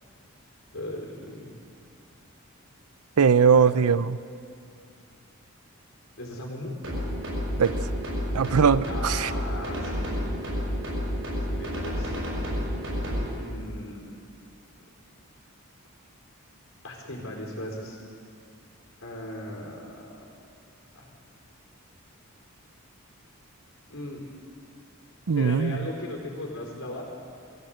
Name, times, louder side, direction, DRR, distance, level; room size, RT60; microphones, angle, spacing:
voice 1, 0.7-1.5 3.5-3.7 6.2-6.8 8.9-10.3 11.5-12.1 13.0-14.1 16.8-18.0 19.0-20.1 20.9-21.1 23.9-24.2 25.3-27.0, left 1 dB, 65° left, 0 dB, 4.4 m, -37 dB
voice 2, 3.2-4.2 7.6-7.7 8.3-9.3 25.3-25.8, right 6 dB, 80° right, 16 dB, 0.6 m, -20 dB
sound 1, 6.8-13.3, equal, 60° right, 6.1 m, -30 dB
21.5 x 16.0 x 7.9 m, 2.4 s
head